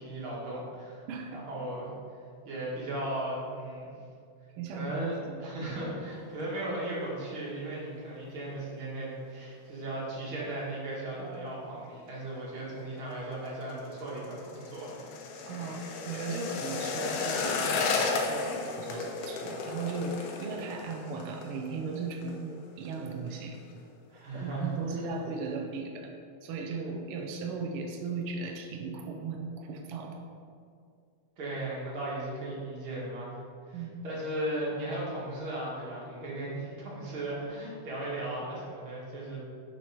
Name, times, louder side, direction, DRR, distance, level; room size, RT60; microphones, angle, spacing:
voice 1, 0.0-1.0 1.3-1.9 2.4-3.9 4.7-15.3 24.1-25.1 31.4-33.4 33.7-39.4, right 1 dB, 50° right, -6 dB, 2.3 m, -36 dB
voice 2, 1.1-1.4 4.6-5.6 15.4-23.6 24.3-26.1 26.4-30.2 33.7-34.0, right 4 dB, 85° right, 2 dB, 1.2 m, -37 dB
sound 1, 13.3-22.4 22.6-23.0 23.3-23.8 24.2-24.3, left 4 dB, 90° left, 2.2 m, -34 dB
6.1 x 6.0 x 4.8 m, 2.3 s
omnidirectional pair, 3.4 m